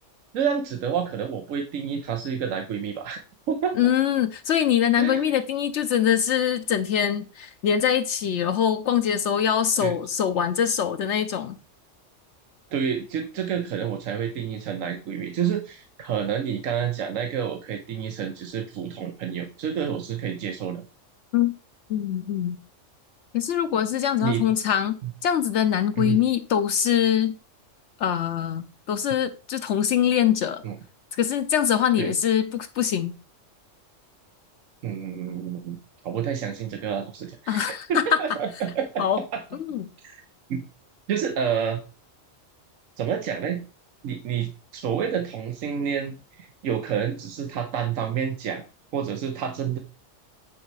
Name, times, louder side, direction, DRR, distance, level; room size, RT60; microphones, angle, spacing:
voice 1, 0.3-3.2 3.5-3.7 5.0-5.3 9.8-9.9 12.7-20.8 24.2-24.4 25.0-25.1 26.0-26.2 30.6-30.7 32.0-32.2 34.8-35.8 36.0-39.1 39.3-39.4 40.0-40.2 40.5-40.6 41.1-41.8 43.0-43.6 44.0-48.6 48.9-49.8, right 8 dB, 90° right, 1.2 m, -29 dB
voice 2, 3.8-11.6 21.3-21.5 21.9-22.6 23.3-25.0 25.2-27.3 28.0-30.6 31.1-33.1 37.5-38.2 39.0-39.2 39.7-39.9, left 9 dB, 70° left, 0.9 m, -23 dB
9.0 x 4.1 x 4.7 m
omnidirectional pair, 1.3 m